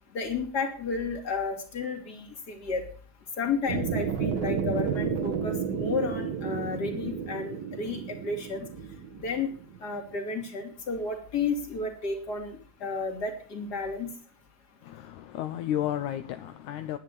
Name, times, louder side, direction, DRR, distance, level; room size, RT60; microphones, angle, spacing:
voice 1, 0.1-2.8 3.4-8.7 9.2-9.5 9.8-14.1, left 4 dB, 30° left, 3.0 m, -32 dB
sound 1, 3.7-9.8, right 7 dB, 90° right, 3.9 m, -31 dB
voice 2, 14.8-17.0, left 11 dB, 75° left, 1.8 m, -32 dB
11.0 x 10.0 x 8.4 m
omnidirectional pair, 4.0 m